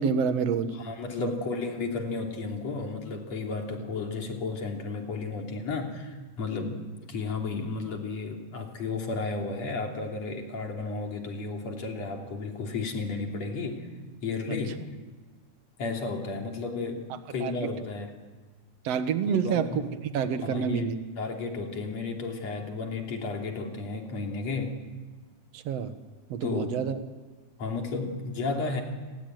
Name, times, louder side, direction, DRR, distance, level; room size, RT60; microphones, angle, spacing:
voice 1, 0.0-0.7 1.2-1.3 14.5-14.6 17.4-17.7 18.8-21.0 25.5-25.9 26.3-27.0, right 7 dB, 60° right, 9 dB, 2.4 m, -28 dB
voice 2, 0.8-13.9 14.2-14.8 15.8-18.2 19.3-19.9 20.4-24.8 26.4-26.8 27.6-28.8, left 3 dB, 60° left, 2 dB, 4.3 m, -33 dB
28.5 x 21.0 x 9.2 m, 1.3 s
omnidirectional pair, 3.4 m